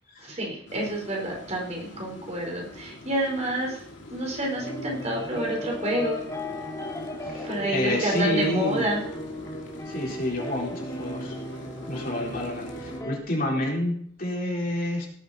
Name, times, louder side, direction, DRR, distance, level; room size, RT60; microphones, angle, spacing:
voice 1, 0.2-3.8 4.1-6.2 7.4-9.0, right 1 dB, 35° right, -1 dB, 4.6 m, -29 dB
sound 1, 0.7-13.0, left 1 dB, 65° left, 2.6 m, -43 dB
sound 2, 4.5-13.2, equal, 15° left, 2.6 m, -35 dB
voice 2, 7.7-8.9 9.9-11.4 11.9-15.1, left 1 dB, 50° left, -2 dB, 4.1 m, -29 dB
18.0 x 9.2 x 4.3 m, 0.62 s
head